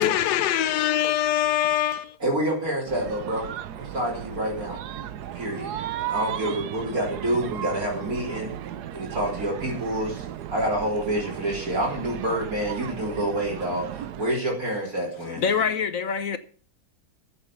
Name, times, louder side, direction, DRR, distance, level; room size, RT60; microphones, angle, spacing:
voice 1, 0.0-2.0, left 11 dB, 90° left, 1.3 m, -23 dB
voice 2, 2.2-3.5 3.8-4.8 5.3-5.7 6.1-8.5 8.9-15.4, right 1 dB, 60° right, 4.2 m, -28 dB
sound 1, 2.9-14.3, right 10 dB, 80° right, 1.3 m, -35 dB
voice 3, 15.2-16.4, left 6 dB, 60° left, 1.2 m, -25 dB
13.0 x 8.2 x 7.2 m
omnidirectional pair, 1.7 m